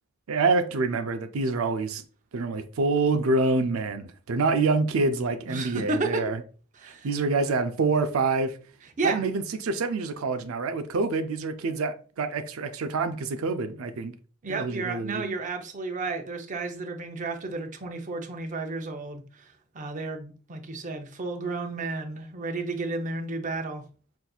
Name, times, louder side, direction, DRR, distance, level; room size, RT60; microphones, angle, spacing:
voice 1, 0.3-2.0 2.3-6.4 6.8-8.6 9.0-14.1 14.5-15.2, right 3 dB, 85° right, 0.5 m, -26 dB
voice 2, 5.5-6.2 6.8-7.1 9.0-9.2 14.4-19.5 19.7-23.8, right 3 dB, 40° right, 0.6 m, -32 dB
5.7 x 2.6 x 2.3 m
head